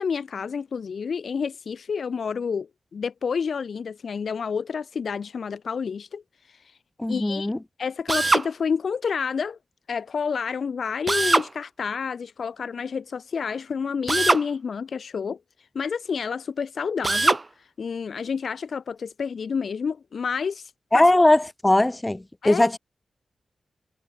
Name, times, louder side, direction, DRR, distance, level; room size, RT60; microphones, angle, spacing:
voice 1, 0.0-6.2 6.5-6.6 7.1-7.5 7.8-9.6 9.9-15.4 15.7-17.4 17.8-21.1 22.4-22.7, left 6 dB, 65° left, 3.3 m, -29 dB
voice 2, 7.0-7.6 20.9-22.8, left 1 dB, 15° left, 2.2 m, -20 dB
Drill, 8.1-8.5 11.1-11.5 14.1-14.5 17.0-17.4, right 2 dB, 25° right, 5.9 m, -21 dB
wide cardioid pair, 110°, 0 cm